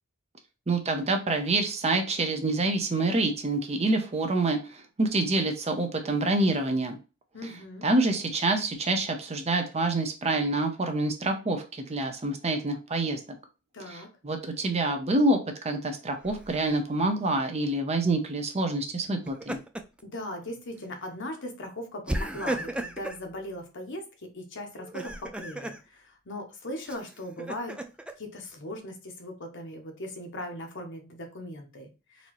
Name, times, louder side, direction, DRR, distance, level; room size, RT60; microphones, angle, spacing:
voice 1, 0.7-7.0 7.8-13.2 13.9-14.0 14.2-19.6, right 2 dB, 30° right, 5 dB, 0.7 m, -27 dB
voice 2, 7.3-7.9 13.7-14.1 20.0-27.8 28.2-32.3, left 1 dB, 60° left, 4 dB, 1.0 m, -39 dB
Laughter, 16.2-16.8 19.1-20.0 20.4-20.6 22.1-23.2 24.8-25.8 26.9-28.1, right 1 dB, 5° right, 0.3 m, -35 dB
4.1 x 2.8 x 3.0 m, 0.31 s
head